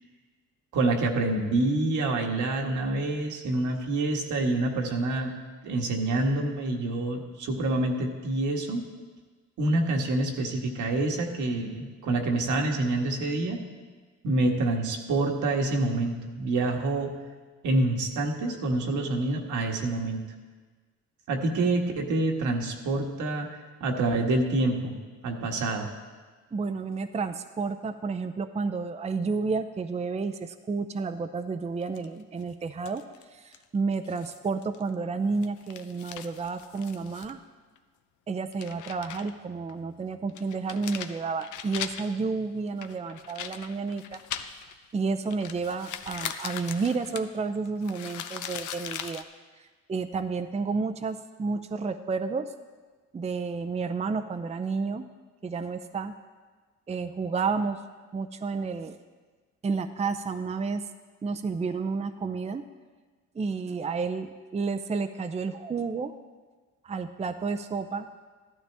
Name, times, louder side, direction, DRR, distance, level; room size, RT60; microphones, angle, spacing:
voice 1, 0.7-5.3 5.6-8.9 9.6-13.6 14.2-17.1 17.6-20.2 21.3-23.5 23.8-24.9 25.2-25.9, right 2 dB, 75° right, 2 dB, 1.6 m, -27 dB
voice 2, 26.5-33.0 33.3-37.4 38.3-44.2 44.9-49.2 49.9-52.5 53.1-55.1 55.4-56.1 56.9-57.8 58.1-59.0 59.6-60.8 61.2-62.6 63.3-66.1 66.8-68.1, right 4 dB, 20° right, 9 dB, 0.5 m, -31 dB
sound 1, 31.8-32.4 32.8-33.2 33.5-33.6 34.0-34.9 35.3-37.3 37.8-37.9 38.4-39.4 39.7-39.8 40.3-42.2 42.8-44.8 45.2-49.2, left 9 dB, 75° left, 0.7 m, -40 dB
14.0 x 12.0 x 3.4 m, 1.4 s
cardioid pair, 90°, 30 cm